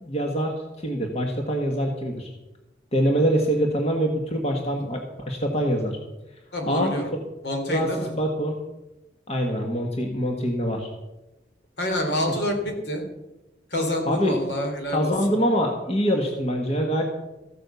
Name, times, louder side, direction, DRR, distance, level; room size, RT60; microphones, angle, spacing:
voice 1, 0.0-2.3 2.9-6.0 6.7-6.9 7.7-8.6 9.3-10.9 14.1-14.4 14.9-17.0, equal, 35° left, 2 dB, 1.6 m, -24 dB
voice 2, 6.5-7.1 7.4-8.1 11.8-13.0 13.7-15.1, left 1 dB, 70° left, 3 dB, 3.4 m, -27 dB
15.0 x 9.0 x 7.0 m, 1.0 s
head